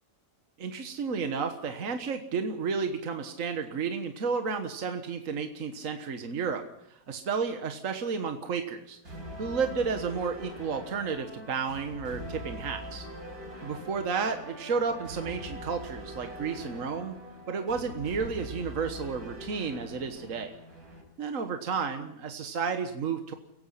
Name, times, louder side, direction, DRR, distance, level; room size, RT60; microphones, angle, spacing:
voice 1, 0.6-9.0 9.4-13.0 13.6-17.1 17.5-20.5 21.2-23.3, right 5 dB, 65° right, 6 dB, 1.7 m, -32 dB
sound 1, 9.0-21.0, equal, 90° right, 5.8 m, -43 dB
29.5 x 17.5 x 5.8 m, 0.77 s
omnidirectional pair, 1.5 m